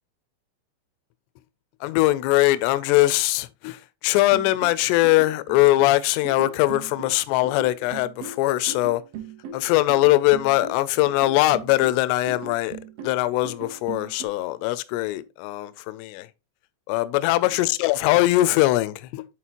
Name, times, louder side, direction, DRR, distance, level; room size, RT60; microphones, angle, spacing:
voice 1, 1.8-9.0 9.5-16.3 16.9-19.3, left 17 dB, 85° left, 2.5 m, -21 dB
sound 1, 4.3-14.3, right 4 dB, 70° right, 2.4 m, -39 dB
9.9 x 4.4 x 2.9 m
omnidirectional pair, 5.3 m